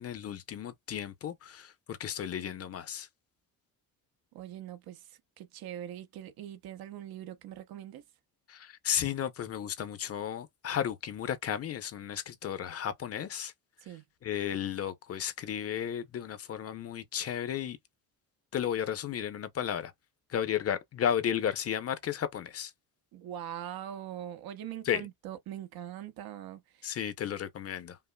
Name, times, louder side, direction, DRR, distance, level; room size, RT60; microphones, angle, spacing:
voice 1, 0.0-3.1 8.5-13.5 14.2-17.8 18.5-19.9 20.3-22.7 24.9-25.0 26.8-28.0, left 9 dB, 40° left, 0.6 m, -33 dB
voice 2, 4.3-8.0 13.8-14.0 23.1-27.0, right 11 dB, 80° right, 0.9 m, -42 dB
5.4 x 2.0 x 2.2 m
cardioid pair, 140°, 36 cm